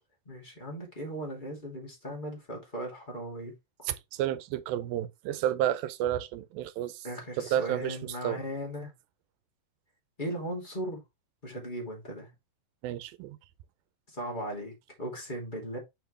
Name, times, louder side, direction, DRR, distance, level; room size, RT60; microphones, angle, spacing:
voice 1, 0.3-3.5 3.8-3.9 7.0-8.9 10.2-11.0 11.4-12.3 14.1-15.8, right 1 dB, 15° left, 2.3 m, -37 dB
voice 2, 3.9-7.1 7.4-8.4 12.8-13.4, right 11 dB, 85° right, 2.5 m, -31 dB
7.8 x 4.7 x 3.2 m
omnidirectional pair, 4.1 m